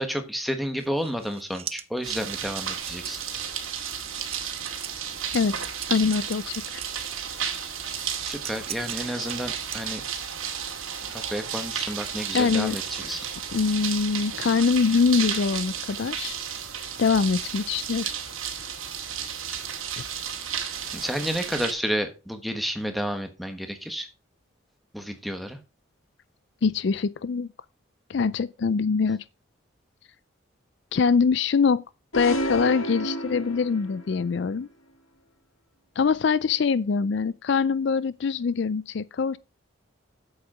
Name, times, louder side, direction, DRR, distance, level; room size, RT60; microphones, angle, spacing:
voice 1, 0.0-3.2 8.2-10.0 11.0-13.3 20.9-24.1 24.9-25.6, equal, ahead, 1.2 m, -31 dB
sound 1, 0.8-7.0 7.7-10.3, right 10 dB, 30° right, 0.5 m, -41 dB
sound 2, 2.0-21.7, right 8 dB, 85° right, 2.1 m, -33 dB
voice 2, 5.9-6.8 12.3-12.8 13.5-16.4 17.0-18.1 26.6-27.5 28.1-29.2 30.9-31.8 32.1-34.7 36.0-39.4, left 5 dB, 55° left, 0.4 m, -23 dB
sound 3, 32.1-34.1, equal, 80° left, 1.6 m, -30 dB
8.1 x 7.9 x 4.9 m
head